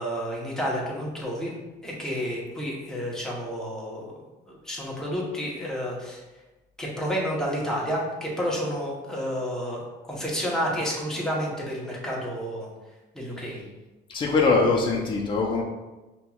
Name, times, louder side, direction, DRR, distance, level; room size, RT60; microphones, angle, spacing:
voice 1, 0.0-1.5 1.8-4.1 4.5-6.2 6.8-9.8 10.1-12.7 13.1-13.6, equal, 5° left, -4 dB, 0.9 m, -30 dB
voice 2, 14.1-15.6, left 4 dB, 25° left, -2 dB, 0.6 m, -22 dB
5.3 x 3.0 x 2.3 m, 1.1 s
cardioid pair, 135°, 18 cm